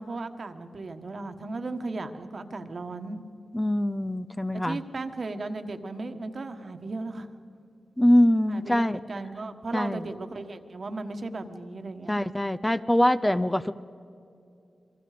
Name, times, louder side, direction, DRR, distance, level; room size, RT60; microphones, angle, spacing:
voice 1, 0.0-3.2 4.5-7.3 8.5-12.2, right 3 dB, 55° right, 7 dB, 1.4 m, -36 dB
voice 2, 3.5-4.8 8.0-9.0 9.7-10.0 12.1-13.7, left 1 dB, 10° left, 12 dB, 0.6 m, -23 dB
27.5 x 23.0 x 5.1 m, 2.6 s
cardioid pair, 70°, 0 cm